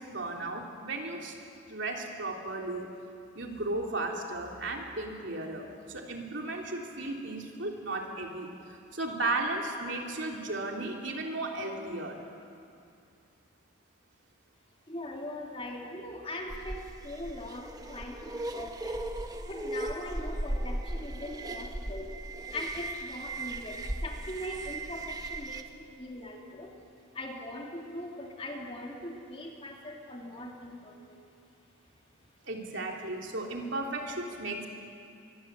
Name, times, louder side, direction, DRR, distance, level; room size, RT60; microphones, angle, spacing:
voice 1, 0.0-1.3 1.7-2.9 3.3-8.5 8.9-12.2 32.5-34.7, right 2 dB, 60° right, 1 dB, 3.2 m, -35 dB
voice 2, 14.9-19.0 19.5-22.2 22.5-26.8 27.1-31.2, left 1 dB, 25° left, 0 dB, 2.8 m, -41 dB
sound 1, 16.5-25.6, right 1 dB, 20° right, 1.1 m, -37 dB
24.0 x 23.5 x 8.2 m, 2.5 s
head